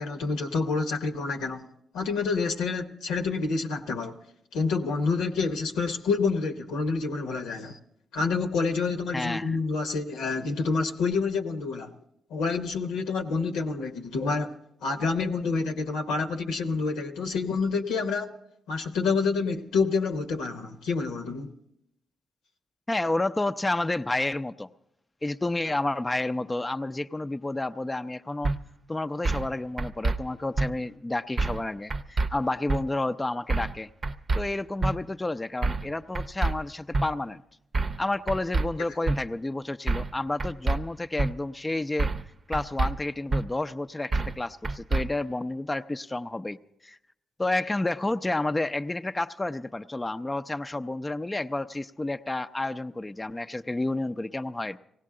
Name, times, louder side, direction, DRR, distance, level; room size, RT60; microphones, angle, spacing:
voice 1, 0.0-1.6 1.9-4.2 4.5-7.8 8.1-11.9 12.3-14.5 14.8-18.3 18.7-21.5, left 4 dB, 85° left, 5 dB, 1.0 m, -28 dB
voice 2, 9.1-9.6 22.9-24.7 25.2-28.5 28.9-33.9 34.4-37.4 38.0-42.1 42.5-46.6 46.8-47.0 47.4-54.8, left 2 dB, 20° left, 8 dB, 0.5 m, -30 dB
sound 1, 28.4-28.6 29.3-29.5 29.8-30.2 30.6-30.7 31.4-31.6 31.9-32.3 32.7-32.8 33.5-33.8 34.0-34.4 34.8-34.9 35.6-35.9 36.2-36.5 36.9-37.1 37.7-38.0 38.3-38.7 39.1-39.2 39.9-40.1 40.4-40.8 41.2-41.3 42.0-42.3 42.5-42.9 43.3-43.4 44.1-44.4 44.6-45.0, right 3 dB, 50° right, 0.7 m, -26 dB
18.5 x 17.0 x 3.8 m, 0.77 s
supercardioid pair, 50°, 0 cm